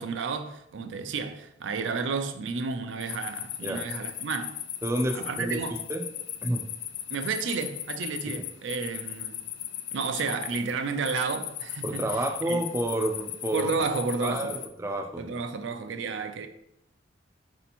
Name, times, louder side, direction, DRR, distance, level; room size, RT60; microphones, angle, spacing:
voice 1, 0.0-4.6 5.1-5.8 7.1-9.4 9.9-12.6 13.5-14.6 15.2-16.5, right 4 dB, 85° right, 0.4 m, -31 dB
sound 1, 3.0-14.7, left 11 dB, 80° left, 0.4 m, -37 dB
voice 2, 4.8-5.6 5.9-6.0 6.4-6.6 8.3-8.5 11.8-13.7 14.2-15.3, right 1 dB, 15° right, 0.4 m, -29 dB
4.3 x 2.8 x 4.2 m
head